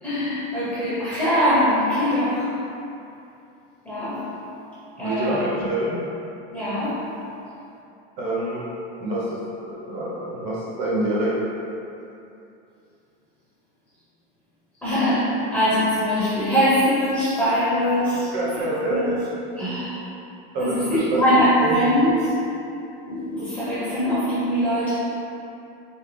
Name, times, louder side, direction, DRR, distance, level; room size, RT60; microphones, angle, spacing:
voice 1, 0.0-2.5 3.8-4.3 5.0-5.7 6.5-7.1 14.8-19.1 19.6-20.0 20.6-22.3 23.1-24.9, equal, 5° left, -14 dB, 1.0 m, -22 dB
voice 2, 5.0-6.1 8.2-8.6 9.0-9.2 9.7-11.3 18.3-19.2 19.6-19.7 20.5-21.2 21.6-21.7, right 1 dB, 45° right, -7 dB, 1.2 m, -26 dB
4.6 x 2.3 x 3.3 m, 2.7 s
supercardioid pair, 160°, 29 cm